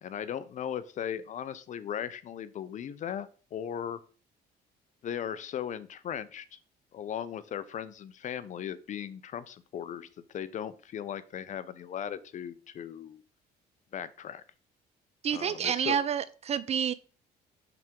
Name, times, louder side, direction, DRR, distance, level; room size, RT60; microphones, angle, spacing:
voice 1, 0.0-4.0 5.0-6.6 6.9-13.2 13.9-14.4 15.3-16.0, left 9 dB, 45° left, 0.6 m, -37 dB
voice 2, 15.2-16.9, right 8 dB, 40° right, 0.5 m, -29 dB
5.9 x 3.4 x 5.2 m
cardioid pair, 110°, 17 cm